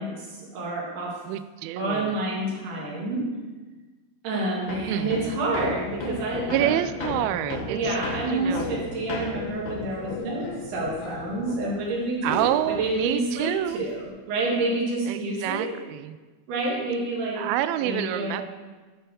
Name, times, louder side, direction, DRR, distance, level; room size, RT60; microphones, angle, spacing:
voice 1, 0.0-1.1 1.8-3.2 4.2-6.7 7.7-12.5 12.8-15.7 16.5-17.5 17.8-18.4, right 2 dB, 70° right, -4 dB, 4.1 m, -28 dB
voice 2, 1.3-2.2 4.9-5.4 6.5-8.0 8.3-8.8 12.2-13.8 15.1-16.2 17.4-18.4, right 12 dB, 90° right, 11 dB, 2.1 m, -28 dB
Hammer, 4.7-12.0 12.3-14.0, left 3 dB, 70° left, 1.9 m, -36 dB
sound 1, 5.6-11.6, left 9 dB, 85° left, 2.7 m, -39 dB
12.0 x 4.6 x 6.5 m, 1.3 s
omnidirectional pair, 4.8 m